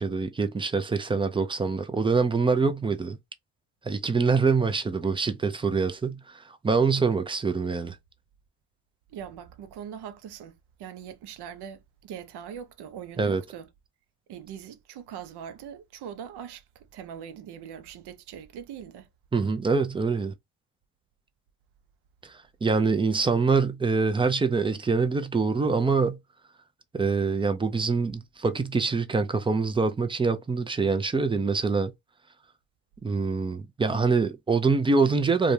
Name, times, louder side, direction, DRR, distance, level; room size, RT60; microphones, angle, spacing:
voice 1, 0.0-3.2 3.8-8.0 13.2-13.4 19.3-20.3 22.2-22.3 22.6-26.2 26.9-31.9 33.0-35.5, right 4 dB, 10° right, 0.4 m, -25 dB
voice 2, 9.1-13.7 14.3-19.1, right 8 dB, 55° right, 0.7 m, -41 dB
2.4 x 2.3 x 3.2 m
hypercardioid pair, 60°, 47 cm